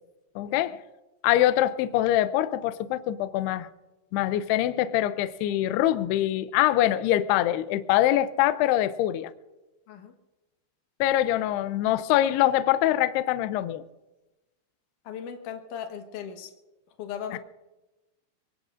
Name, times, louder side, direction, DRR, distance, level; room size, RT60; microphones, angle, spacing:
voice 1, 0.4-0.8 1.2-3.7 4.1-9.3 11.0-13.8 17.3-17.4, left 13 dB, 90° left, 12 dB, 2.3 m, -24 dB
voice 2, 15.0-16.5 17.0-17.4, left 8 dB, 70° left, 4 dB, 2.0 m, -37 dB
24.0 x 22.0 x 2.6 m, 1.1 s
omnidirectional pair, 5.5 m